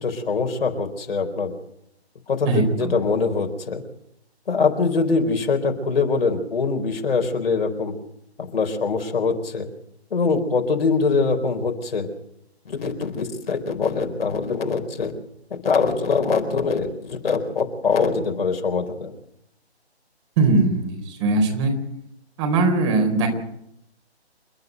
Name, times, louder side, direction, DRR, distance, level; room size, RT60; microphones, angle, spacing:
voice 1, 0.0-1.5 2.3-3.8 4.5-7.9 8.5-9.7 10.1-12.1 12.7-15.1 15.6-19.1, left 4 dB, 60° left, 4 dB, 4.3 m, -23 dB
voice 2, 2.5-2.9 20.4-21.7 22.4-23.3, right 3 dB, 25° right, 4 dB, 4.1 m, -20 dB
29.0 x 9.8 x 9.2 m, 0.78 s
figure-of-eight pair, 150°, 33 cm